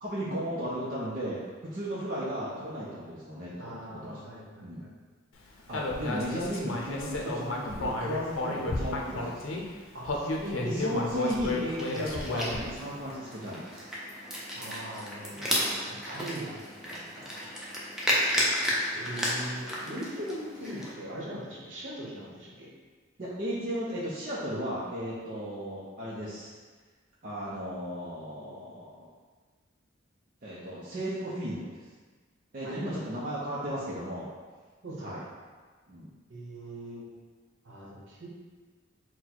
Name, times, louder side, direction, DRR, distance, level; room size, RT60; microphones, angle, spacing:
voice 1, 0.0-4.2 4.6-4.8 5.7-9.6 10.6-13.9 16.1-16.2 23.2-26.5 27.2-29.1 30.4-31.7 32.5-34.3 35.0-35.2 35.9-36.1, equal, 45° right, -8 dB, 0.6 m, -35 dB
voice 2, 3.6-4.9 9.9-10.8 14.5-17.7 18.9-22.7 32.6-32.8 34.8-35.3 36.3-37.0 37.6-38.3, right 1 dB, 65° right, -4 dB, 0.9 m, -41 dB
Human voice, 5.7-9.6 10.0-12.8, left 2 dB, 85° left, 0.6 m, -32 dB
sound 1, 11.8-20.9, equal, 5° right, 0.6 m, -33 dB
4.1 x 2.2 x 4.4 m, 1.4 s
head